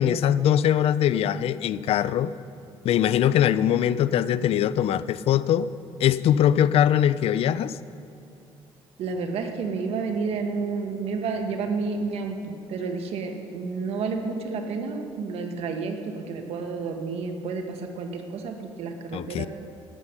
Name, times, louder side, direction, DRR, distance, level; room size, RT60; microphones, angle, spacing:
voice 1, 0.0-2.3 2.8-5.7 6.0-7.8 19.1-19.5, left 10 dB, 70° left, 16 dB, 0.4 m, -22 dB
voice 2, 9.0-19.5, right 4 dB, 75° right, 4 dB, 1.4 m, -30 dB
14.0 x 9.7 x 6.0 m, 2.7 s
cardioid pair, 115°, 10 cm